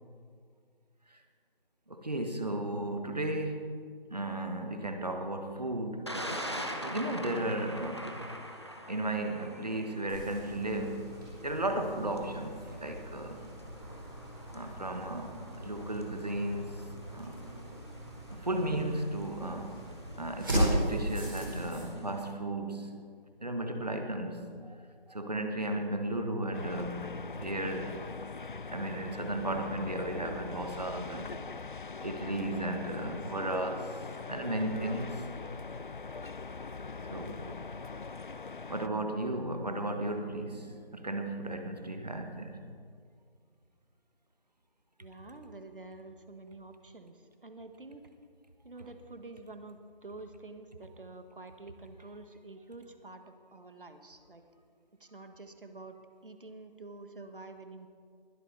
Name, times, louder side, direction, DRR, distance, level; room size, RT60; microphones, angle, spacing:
voice 1, 1.9-3.7 4.1-6.1 6.8-8.1 8.9-11.1 11.4-13.4 14.5-17.4 18.3-19.8 20.2-23.0 23.4-24.8 25.1-28.0 28.7-31.4 32.0-34.0 34.2-35.3 37.1-37.5 38.7-42.6, right 1 dB, 45° right, 6 dB, 1.3 m, -35 dB
Thunder, 6.1-22.3, equal, 30° left, 0.8 m, -45 dB
sound 1, 10.1-21.9, right 1 dB, 25° right, 3.9 m, -37 dB
sound 2, 26.5-38.9, left 4 dB, 60° left, 0.4 m, -42 dB
voice 2, 45.0-48.0 48.6-54.4 55.0-56.0 56.2-57.9, right 3 dB, 65° right, 7 dB, 1.5 m, -48 dB
20.5 x 11.0 x 4.0 m, 2.2 s
figure-of-eight pair, 180°, 29 cm